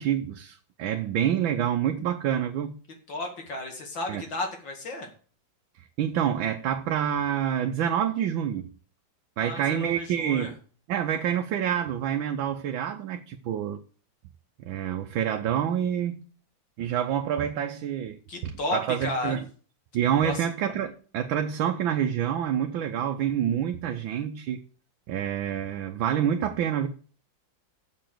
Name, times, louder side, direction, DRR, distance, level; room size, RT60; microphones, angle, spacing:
voice 1, 0.0-2.8 4.1-4.2 5.8-8.7 9.4-10.5 10.9-13.8 14.6-16.2 16.8-19.4 19.9-24.6 25.1-26.9, right 9 dB, 90° right, 1.5 m, -27 dB
voice 2, 3.1-5.1 9.4-10.5 18.3-19.4 20.2-20.4, left 2 dB, 75° left, 2.9 m, -33 dB
7.1 x 6.7 x 7.6 m
omnidirectional pair, 2.1 m